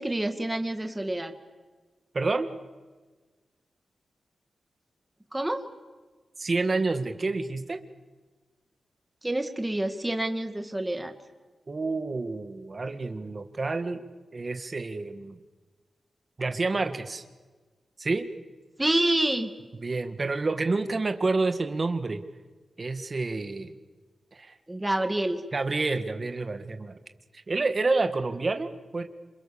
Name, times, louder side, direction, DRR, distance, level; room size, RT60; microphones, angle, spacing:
voice 1, 0.0-1.3 5.3-5.6 9.2-11.1 18.8-19.5 24.7-25.4, right 1 dB, 10° right, 6 dB, 2.2 m, -27 dB
voice 2, 2.1-2.5 6.4-7.8 11.7-14.0 14.3-15.4 16.4-17.2 18.0-18.3 19.7-22.2 22.8-23.7 24.3-24.6 25.5-27.0 27.3-29.0, right 3 dB, 35° right, 8 dB, 1.8 m, -28 dB
28.0 x 27.5 x 7.1 m, 1.3 s
wide cardioid pair, 150°, 0 cm